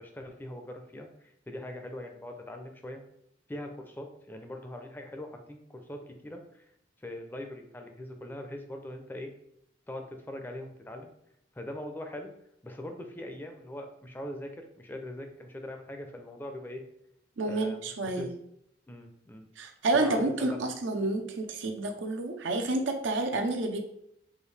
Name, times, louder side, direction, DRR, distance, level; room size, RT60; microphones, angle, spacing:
voice 1, 0.0-3.0 3.5-6.6 7.0-9.3 9.9-11.1 11.5-12.3 12.6-16.8 17.5-17.9 18.2-18.3 18.9-19.5 20.0-20.6, left 1 dB, 10° left, 4 dB, 0.4 m, -41 dB
voice 2, 17.4-18.3 19.6-23.8, right 2 dB, 85° right, 4 dB, 0.6 m, -29 dB
4.8 x 2.6 x 3.2 m, 0.74 s
head